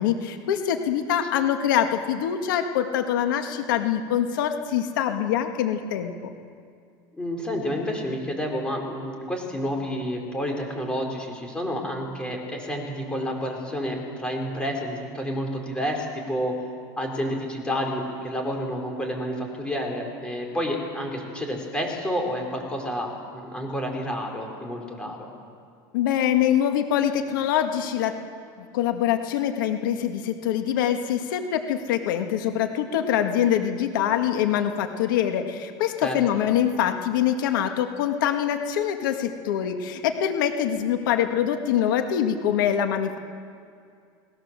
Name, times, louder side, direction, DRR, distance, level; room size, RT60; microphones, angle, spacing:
voice 1, 0.0-6.3 25.1-25.2 25.9-28.1 28.7-43.2, left 10 dB, 90° left, 6 dB, 1.9 m, -24 dB
voice 2, 7.1-16.6 17.0-25.3 36.0-36.2, equal, 10° left, 2 dB, 4.4 m, -29 dB
29.5 x 19.5 x 7.5 m, 2.3 s
supercardioid pair, 140°, 11 cm